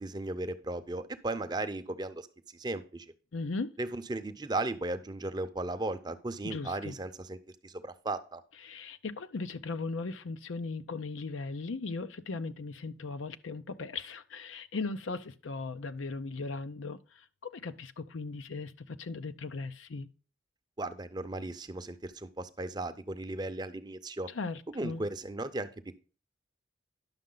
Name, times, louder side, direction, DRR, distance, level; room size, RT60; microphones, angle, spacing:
voice 1, 0.0-3.1 3.8-7.4 7.6-8.4 20.8-24.3 24.7-26.0, right 2 dB, 20° right, 0.6 m, -36 dB
voice 2, 3.3-3.7 6.4-7.0 8.6-17.0 17.4-20.1 24.3-25.0, left 3 dB, 90° left, 0.6 m, -38 dB
10.5 x 6.4 x 3.8 m
head